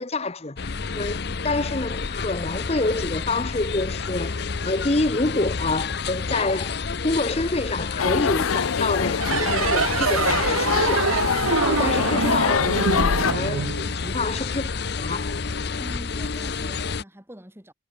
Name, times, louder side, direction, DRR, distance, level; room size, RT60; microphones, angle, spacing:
voice 1, 0.0-11.1 11.6-15.3, left 2 dB, 30° left, 0.9 m, -27 dB
sound 1, 0.6-17.0, left 4 dB, 55° left, 0.7 m, -29 dB
sound 2, 8.0-13.3, left 6 dB, 90° left, 0.6 m, -24 dB
sound 3, 9.2-14.4, right 6 dB, 90° right, 0.7 m, -25 dB
voice 2, 15.8-17.7, equal, 10° right, 2.9 m, -43 dB
head